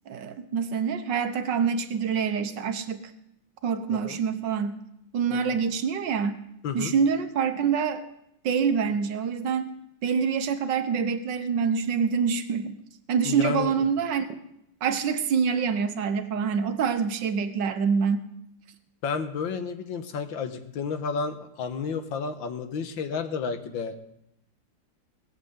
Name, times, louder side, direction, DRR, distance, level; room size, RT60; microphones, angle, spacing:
voice 1, 0.1-3.0 3.6-4.8 5.1-6.3 6.7-8.1 8.4-9.8 10.0-12.8 13.1-14.3 14.8-18.2, right 6 dB, 70° right, 9 dB, 1.6 m, -26 dB
voice 2, 13.3-13.7 19.0-24.0, left 5 dB, 80° left, 8 dB, 1.9 m, -31 dB
19.5 x 7.2 x 8.0 m, 0.80 s
omnidirectional pair, 2.1 m